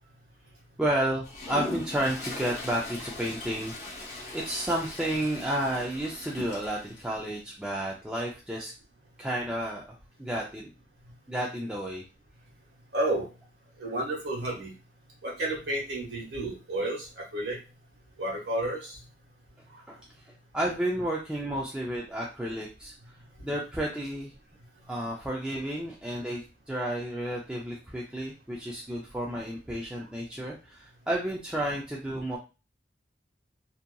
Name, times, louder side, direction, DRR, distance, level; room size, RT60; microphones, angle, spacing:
voice 1, 0.8-8.7 9.2-9.9 10.2-10.7 11.3-12.0 19.9-20.0 20.5-22.9 23.4-24.3 24.9-32.4, right 1 dB, 5° right, -3 dB, 0.4 m, -31 dB
Toilet flush, 1.2-7.0, left 2 dB, 40° left, 0.7 m, -40 dB
voice 2, 12.9-13.2 13.8-14.7 15.2-17.6 18.2-18.9, right 1 dB, 85° right, -3 dB, 1.3 m, -31 dB
2.7 x 2.5 x 2.2 m, 0.31 s
head